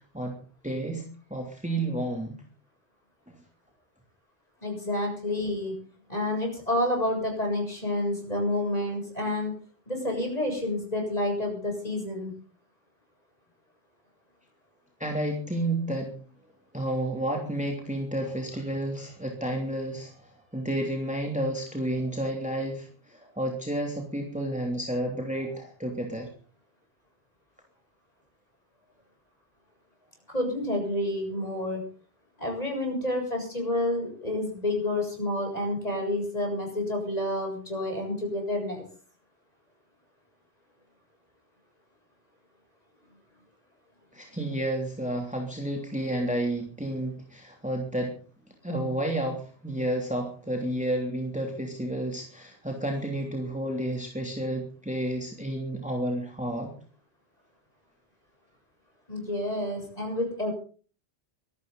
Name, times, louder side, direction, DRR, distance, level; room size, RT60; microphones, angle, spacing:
voice 1, 0.6-2.3 3.3-3.4 15.0-16.2 16.7-26.3 44.1-48.1 48.6-56.7, right 1 dB, 5° right, 1 dB, 3.0 m, -31 dB
voice 2, 4.6-5.8 6.1-9.5 9.9-12.3 30.3-31.9 32.4-38.8 59.1-60.5, left 1 dB, 35° left, 2 dB, 7.8 m, -29 dB
24.0 x 13.5 x 4.0 m, 0.40 s
omnidirectional pair, 1.2 m